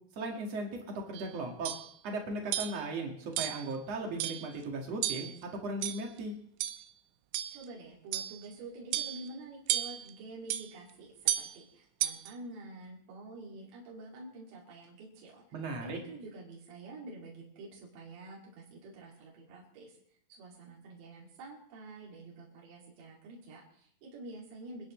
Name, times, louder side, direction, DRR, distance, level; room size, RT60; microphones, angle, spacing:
voice 1, 0.1-0.7 1.1-1.7 2.0-6.3 15.5-16.0, right 2 dB, 50° right, 1 dB, 2.2 m, -37 dB
sound 1, 1.1-1.3 1.6-1.9 2.5-2.8 3.4-3.7 4.2-4.5 5.0-5.4 5.8-6.2 6.6-6.8 7.3-7.6 8.1-8.4 8.9-9.3 9.7-10.1 10.5-10.7 11.3-11.5 12.0-12.3, right 13 dB, 85° right, 3.1 m, -33 dB
voice 2, 7.5-15.4 15.8-20.0 20.3-24.9, right 2 dB, 65° right, -4 dB, 4.7 m, -48 dB
25.5 x 10.5 x 3.2 m, 0.65 s
omnidirectional pair, 5.6 m